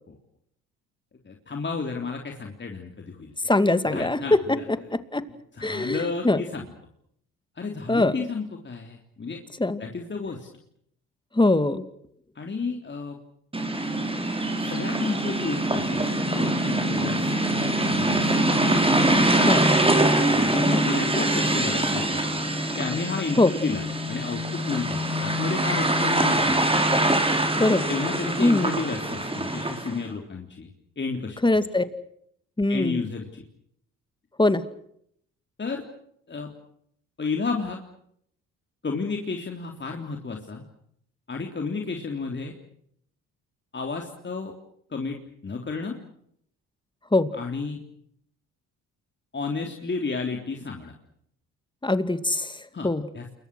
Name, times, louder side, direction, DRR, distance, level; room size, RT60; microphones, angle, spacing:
voice 1, 1.2-3.3 3.9-4.9 5.5-6.7 7.6-9.4 9.8-10.5 12.4-13.2 14.6-17.6 17.9-18.5 19.3-22.4 22.7-26.6 27.9-30.7 31.0-31.6 32.7-33.4 35.6-35.8 36.3-36.5 37.2-37.8 38.8-40.6 41.3-42.5 43.7-44.5 44.9-45.2 45.4-46.0 47.3-47.8 49.3-50.9 52.7-52.9 53.1-53.3, left 4 dB, 30° left, 2 dB, 3.5 m, -32 dB
voice 2, 3.5-4.6 4.9-5.2 5.6-6.4 7.9-8.1 9.6-9.8 11.3-11.8 19.2-19.7 23.4-23.5 27.6-27.9 28.4-28.7 31.4-31.9 32.6-33.0 34.4-34.6 47.1-47.3 51.8-52.6 52.8-53.1, left 2 dB, 15° left, 12 dB, 2.3 m, -22 dB
sound 1, 13.5-30.0, right 1 dB, 15° right, 5.3 m, -24 dB
29.0 x 22.5 x 6.3 m, 0.70 s
supercardioid pair, 65°, 35 cm